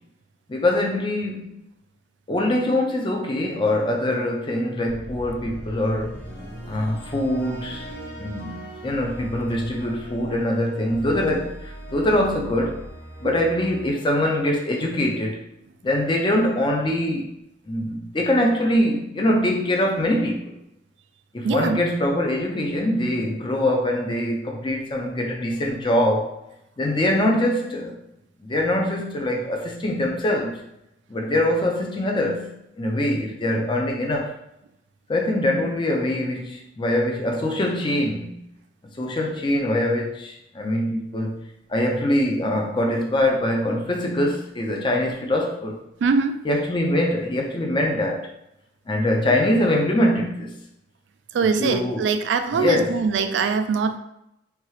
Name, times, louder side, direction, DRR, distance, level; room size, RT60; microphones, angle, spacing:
voice 1, 0.5-1.5 2.3-6.1 6.7-7.9 8.2-12.8 13.2-15.4 15.8-17.3 17.7-20.5 21.3-26.4 26.8-27.9 28.4-30.6 31.1-34.4 35.1-38.4 39.0-41.4 41.7-45.7 46.4-48.3 48.9-50.6 51.6-52.0 52.5-52.9, left 1 dB, 30° left, 1 dB, 0.5 m, -23 dB
sound 1, 4.9-15.1, right 1 dB, 60° left, 1.3 m, -39 dB
voice 2, 21.4-21.8 46.0-46.5 51.3-54.0, right 5 dB, 90° right, 8 dB, 0.3 m, -22 dB
2.9 x 2.3 x 3.1 m, 0.82 s
head